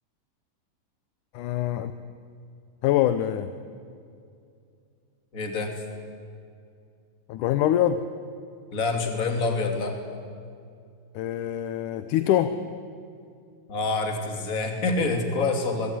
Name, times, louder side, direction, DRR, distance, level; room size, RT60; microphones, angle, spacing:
voice 1, 1.3-1.9 2.8-3.5 7.3-8.0 11.1-12.6, left 11 dB, 75° left, 11 dB, 2.3 m, -24 dB
voice 2, 5.3-5.7 8.7-10.0 13.7-15.9, left 3 dB, 25° left, 4 dB, 3.2 m, -26 dB
24.5 x 22.0 x 10.0 m, 2.4 s
omnidirectional pair, 3.8 m